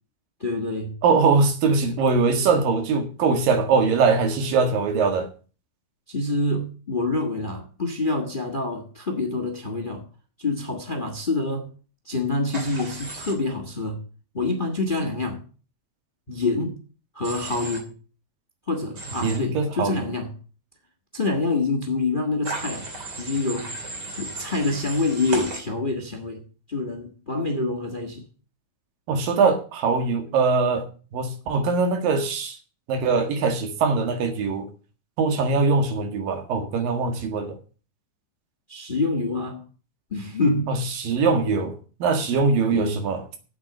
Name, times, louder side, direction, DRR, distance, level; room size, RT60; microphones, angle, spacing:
voice 1, 0.4-1.0 6.1-10.0 10.4-11.7 12.0-14.0 14.3-15.4 16.3-16.8 17.1-18.0 18.7-20.3 21.1-22.9 23.2-23.8 24.2-26.4 26.7-28.3 38.7-39.6 40.1-40.8 42.7-43.0, left 3 dB, 75° left, 0.4 m, -26 dB
voice 2, 1.0-5.3 19.2-20.1 29.1-30.9 31.1-32.6 32.9-34.7 35.2-37.5 40.7-43.2, right 4 dB, 85° right, 3.6 m, -22 dB
Human voice / Train, 12.5-13.3 17.2-17.8 18.9-19.4 22.4-25.6, right 2 dB, 35° right, 2.7 m, -34 dB
8.4 x 8.2 x 7.7 m
omnidirectional pair, 3.9 m